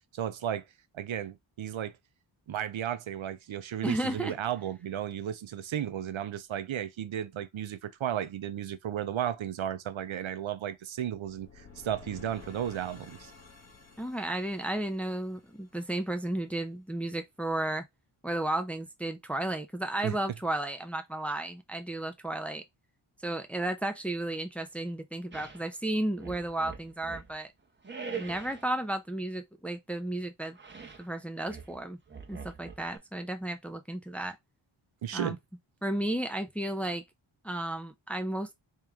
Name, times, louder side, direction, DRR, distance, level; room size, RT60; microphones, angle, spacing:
voice 1, 0.1-0.6 0.9-1.9 2.5-13.3 20.0-20.2 35.0-35.4, right 10 dB, 70° right, 0.7 m, -34 dB
voice 2, 3.8-4.3 14.0-17.8 18.2-22.6 23.2-27.5 28.2-30.6 31.0-32.0 32.3-34.4 35.1-35.4 35.8-37.0 37.4-38.5, right 1 dB, 5° left, 0.5 m, -33 dB
sound 1, 11.2-16.2, left 4 dB, 30° left, 1.2 m, -52 dB
sound 2, 25.3-25.6 26.1-27.4 27.8-28.7 30.5-31.1 31.5-33.0, right 5 dB, 20° right, 1.0 m, -43 dB
3.7 x 3.0 x 3.5 m
wide cardioid pair, 110°, 49 cm